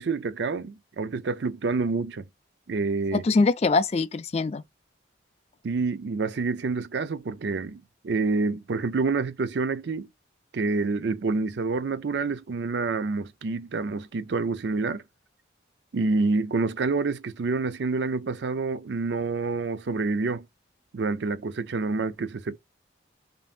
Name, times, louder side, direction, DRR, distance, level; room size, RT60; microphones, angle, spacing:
voice 1, 0.0-2.3 2.7-3.2 5.6-10.1 10.5-15.0 15.9-20.5 20.9-22.6, right 3 dB, 65° right, 0.5 m, -27 dB
voice 2, 3.1-4.6, left 3 dB, 35° left, 0.3 m, -23 dB
5.3 x 2.7 x 2.4 m
head